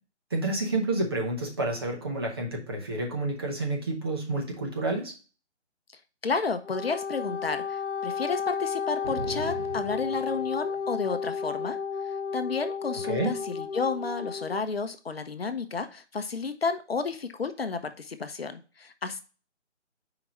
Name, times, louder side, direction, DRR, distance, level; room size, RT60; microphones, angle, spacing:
voice 1, 0.3-5.1 13.1-13.3, right 2 dB, 20° right, -1 dB, 0.9 m, -29 dB
voice 2, 6.2-11.8 12.0-19.2, left 4 dB, 55° left, 9 dB, 0.7 m, -31 dB
Wind instrument woodwind instrument, 6.6-14.6, left 6 dB, 80° left, 1.0 m, -33 dB
sound 1, 9.0-11.0, right 3 dB, 40° right, 1.3 m, -40 dB
4.8 x 3.8 x 5.4 m, 0.35 s
figure-of-eight pair, 155°, 35 cm